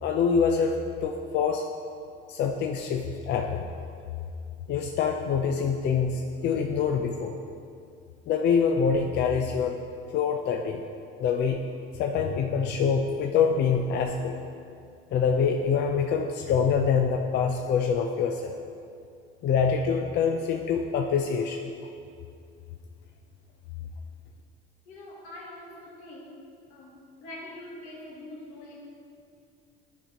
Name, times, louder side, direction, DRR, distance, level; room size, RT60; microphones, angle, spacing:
voice 1, 0.0-0.8 1.0-1.6 2.3-3.7 4.7-7.3 8.3-9.7 10.1-10.8 11.2-11.6 11.9-14.4 15.1-18.5 19.4-21.7, left 6 dB, 55° left, 2 dB, 0.5 m, -25 dB
voice 2, 24.9-26.4 26.7-28.8, left 1 dB, 80° left, -3 dB, 1.7 m, -44 dB
11.0 x 5.2 x 2.9 m, 2.4 s
cardioid pair, 120°, 21 cm